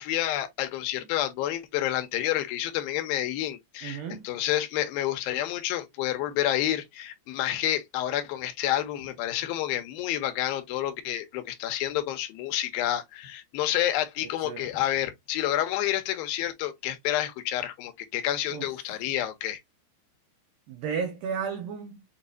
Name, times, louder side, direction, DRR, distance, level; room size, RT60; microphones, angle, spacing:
voice 1, 0.0-19.6, left 13 dB, 80° left, 2.2 m, -29 dB
voice 2, 3.8-4.3 14.4-14.7 18.5-18.7 20.7-22.0, right 6 dB, 85° right, 2.0 m, -33 dB
7.1 x 2.4 x 2.5 m
omnidirectional pair, 5.0 m